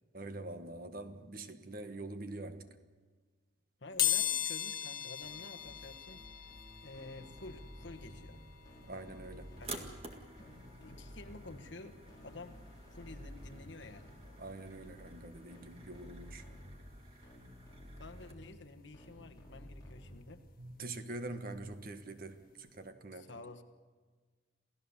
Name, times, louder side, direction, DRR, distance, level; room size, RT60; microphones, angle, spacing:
voice 1, 0.1-2.8 8.8-9.6 14.4-16.5 20.6-23.3, right 2 dB, 45° right, 8 dB, 1.3 m, -45 dB
voice 2, 3.8-6.2 6.8-8.5 9.6-9.9 10.4-12.6 12.9-14.2 18.0-20.4 23.1-23.6, left 2 dB, 65° left, 6 dB, 1.4 m, -50 dB
sound 1, 4.0-14.7 15.1-15.2 16.4-16.5 16.8-18.8 19.2-21.8 22.2-22.4 22.7-22.8, left 12 dB, 45° left, 1.4 m, -40 dB
sound 2, 5.2-20.6, equal, 20° left, 5.0 m, -53 dB
sound 3, 9.6-18.3, right 3 dB, 30° right, 1.9 m, -52 dB
28.0 x 16.0 x 7.1 m, 1.4 s
head